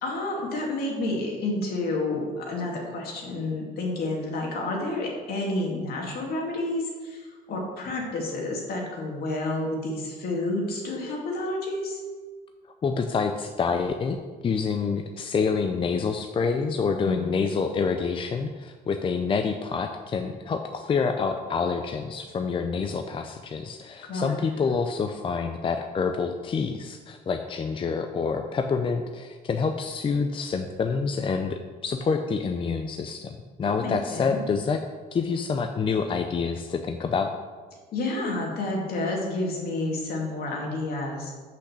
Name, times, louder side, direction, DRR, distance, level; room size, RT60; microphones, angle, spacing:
voice 1, 0.0-12.0 17.0-17.3 24.1-24.4 33.6-34.4 37.9-41.3, left 2 dB, 65° left, -1 dB, 2.3 m, -30 dB
voice 2, 12.8-14.2 14.4-34.8 35.1-37.3, left 5 dB, 30° left, 5 dB, 0.5 m, -27 dB
5.9 x 5.9 x 6.6 m, 1.5 s
cardioid pair, 110°, 17 cm